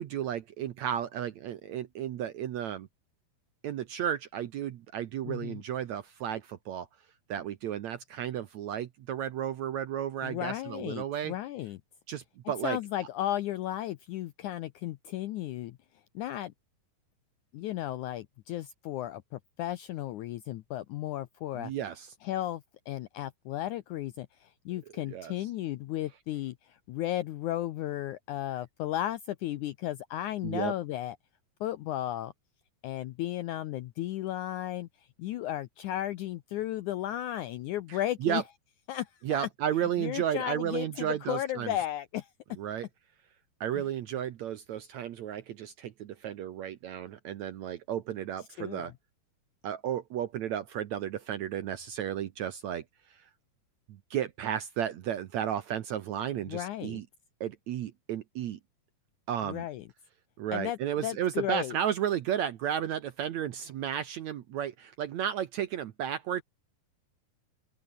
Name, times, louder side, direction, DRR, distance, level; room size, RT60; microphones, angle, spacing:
voice 1, 0.0-2.9 3.6-6.9 7.3-11.3 12.1-12.8 21.5-22.1 25.1-25.3 30.4-30.7 37.9-38.4 39.2-41.8 42.6-42.9 43.6-48.9 49.6-52.8 53.1-53.3 53.9-57.1 57.4-58.6 59.3-59.6 60.4-66.4, right 10 dB, 65° right, 1.8 m, -33 dB
voice 2, 5.2-5.6 10.2-11.8 12.6-15.8 16.2-16.5 17.5-21.7 22.2-31.2 31.6-32.3 32.8-34.9 35.2-38.4 38.9-39.5 40.0-42.3 43.8-43.9 48.6-48.9 56.5-57.0 59.4-59.9 60.5-61.8, left 13 dB, 80° left, 1.8 m, -34 dB
open air
omnidirectional pair, 4.4 m